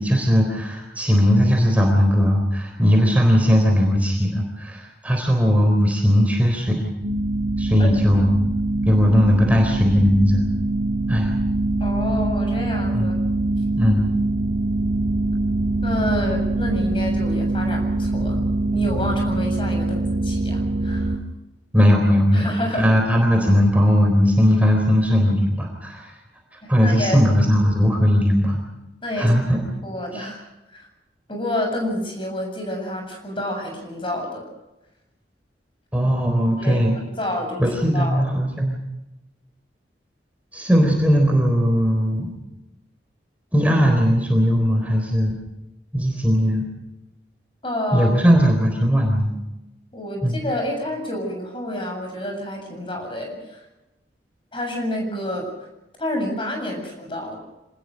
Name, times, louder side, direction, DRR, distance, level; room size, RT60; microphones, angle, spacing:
voice 1, 0.0-6.9 7.6-8.4 8.9-10.4 11.1-11.3 12.9-13.1 13.8-14.1 21.7-26.1 26.7-28.6 29.2-29.6 30.1-30.3 35.9-36.9 37.6-38.8 40.5-42.3 43.5-45.4 45.9-46.7 47.9-49.3 50.2-50.4, equal, 10° right, 1 dB, 3.9 m, -18 dB
sound 1, 7.0-21.2, right 2 dB, 85° right, 2.3 m, -23 dB
voice 2, 11.8-13.1 15.8-18.4 18.7-21.2 22.3-22.9 26.6-27.2 29.0-30.4 30.7-30.8 31.3-34.5 36.6-37.6 37.9-38.3 47.6-48.4 49.9-53.6 54.5-55.5 56.0-57.4, left 1 dB, 30° left, 3 dB, 7.3 m, -29 dB
27.0 x 20.0 x 6.5 m, 0.98 s
head